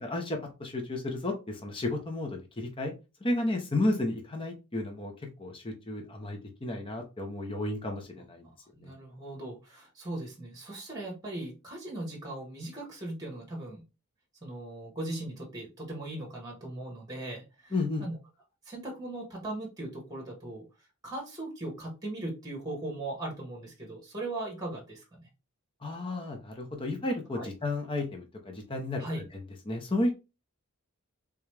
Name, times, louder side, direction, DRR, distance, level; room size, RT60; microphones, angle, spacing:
voice 1, 0.0-2.9 3.2-5.1 5.4-8.5 8.8-8.9 17.7-18.0 25.8-29.0 29.7-30.1, left 2 dB, 25° left, 2 dB, 0.7 m, -32 dB
voice 2, 8.4-13.8 14.4-17.7 18.0-18.2 18.6-25.3 27.3-27.5 29.0-29.2, right 1 dB, 15° right, 0 dB, 1.3 m, -39 dB
3.5 x 3.0 x 3.2 m, 0.28 s
head